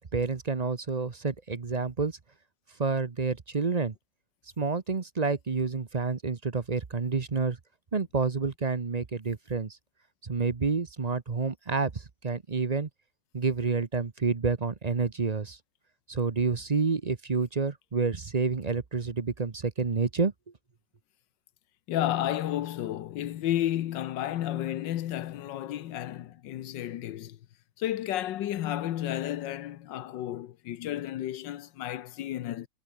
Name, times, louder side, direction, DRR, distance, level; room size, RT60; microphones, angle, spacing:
voice 1, 0.1-2.2 2.8-3.9 4.6-7.6 7.9-9.8 10.2-12.9 13.3-15.6 16.1-20.3, right 4 dB, 30° right, 0.7 m, -29 dB
voice 2, 21.9-27.4 27.8-32.7, left 12 dB, 75° left, 1.5 m, -32 dB
omnidirectional pair, 2.0 m